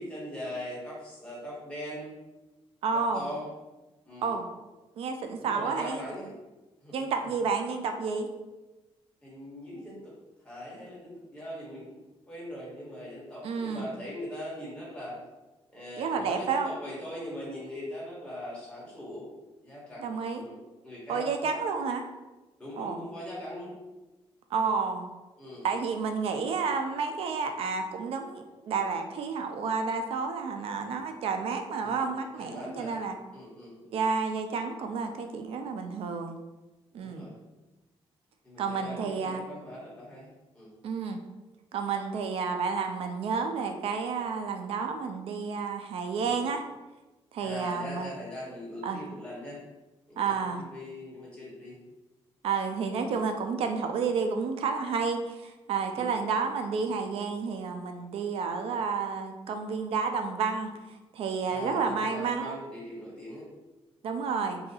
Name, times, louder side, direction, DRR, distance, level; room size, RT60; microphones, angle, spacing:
voice 1, 0.0-2.1 2.9-3.5 4.0-4.4 5.4-6.3 6.8-7.0 9.2-10.1 10.4-15.2 15.7-19.3 19.6-20.6 20.8-21.3 22.6-23.7 25.4-25.8 31.8-32.1 32.4-33.0 33.3-33.7 36.9-37.3 38.4-40.3 40.5-40.7 46.2-46.5 47.4-49.7 50.1-51.8 52.9-53.1 55.9-56.1 61.5-63.5, equal, 10° left, -7 dB, 1.2 m, -41 dB
voice 2, 2.8-3.3 4.2-4.5 5.0-6.1 6.9-8.3 13.4-13.9 16.0-16.7 20.0-20.4 21.1-22.0 22.8-23.1 24.5-25.1 25.6-33.2 33.9-36.4 36.9-37.3 38.6-39.5 40.8-41.2 41.7-46.6 47.3-48.1 48.8-49.0 50.2-50.6 52.4-62.6 64.0-64.6, right 5 dB, 70° right, 5 dB, 0.3 m, -30 dB
2.7 x 2.3 x 3.9 m, 1.1 s
wide cardioid pair, 150°, 10 cm